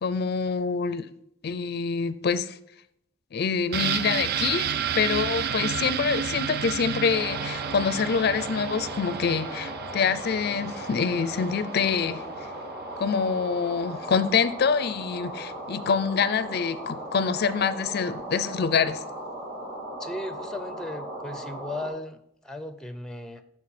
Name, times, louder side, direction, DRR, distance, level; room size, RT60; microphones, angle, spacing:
voice 1, 0.0-1.1 1.4-2.6 3.3-4.7 4.9-12.2 13.0-19.0, left 5 dB, 55° left, 14 dB, 0.4 m, -26 dB
sound 1, 3.7-13.4 13.7-13.8, right 8 dB, 55° right, 0.4 m, -32 dB
sound 2, 7.1-21.9, right 1 dB, 35° right, 3.2 m, -37 dB
voice 2, 20.0-23.4, left 1 dB, 5° left, 10 dB, 0.5 m, -36 dB
11.5 x 4.6 x 4.1 m, 0.75 s
head